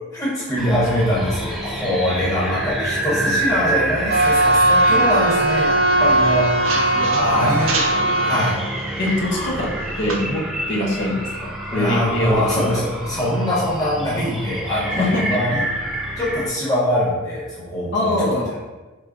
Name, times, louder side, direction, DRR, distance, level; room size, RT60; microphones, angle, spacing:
voice 1, 0.1-7.8 8.2-8.6 9.3-9.5 11.7-15.7 16.2-18.4, equal, 15° left, -8 dB, 1.0 m, -23 dB
sound 1, 0.6-16.5, right 1 dB, ahead, 0.3 m, -28 dB
sound 2, 4.1-8.6 9.0-9.2 9.5-10.2, right 1 dB, 70° right, 0.5 m, -19 dB
voice 2, 6.9-7.6 9.0-9.7 10.0-10.4 10.7-12.7 13.1-13.3 15.0-15.4 17.9-18.5, left 1 dB, 55° left, -2 dB, 0.7 m, -23 dB
3.4 x 2.2 x 3.7 m, 1.2 s
head